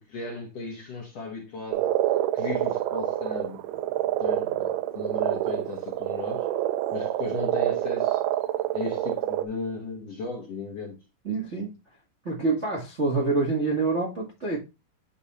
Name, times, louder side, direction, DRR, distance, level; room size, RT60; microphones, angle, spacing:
voice 1, 0.1-1.9 2.3-3.6 4.2-6.5 6.9-8.2 8.7-11.0, left 3 dB, 60° left, 1.8 m, -35 dB
Frog, 1.7-9.5, right 13 dB, 80° right, 1.9 m, -27 dB
voice 2, 11.2-11.7 12.2-14.6, right 3 dB, 40° right, 0.9 m, -26 dB
10.5 x 3.5 x 4.2 m
omnidirectional pair, 4.5 m